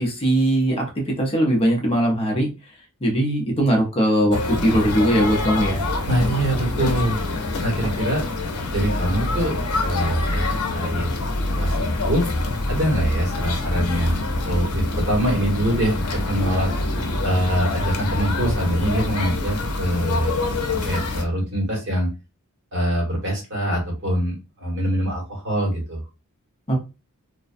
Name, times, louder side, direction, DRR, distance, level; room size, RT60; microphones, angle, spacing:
voice 1, 0.0-2.5 3.0-5.8 26.7-26.8, right 1 dB, 25° left, 0 dB, 0.6 m, -20 dB
sound 1, 4.3-21.2, left 2 dB, 75° left, 0.6 m, -25 dB
voice 2, 6.1-7.2 7.6-8.2 8.7-9.6 9.8-11.1 11.5-12.2 12.7-16.7 17.2-20.4 20.7-22.1 22.7-26.0, equal, 55° right, -1 dB, 1.2 m, -24 dB
2.4 x 2.2 x 2.5 m, 0.29 s
head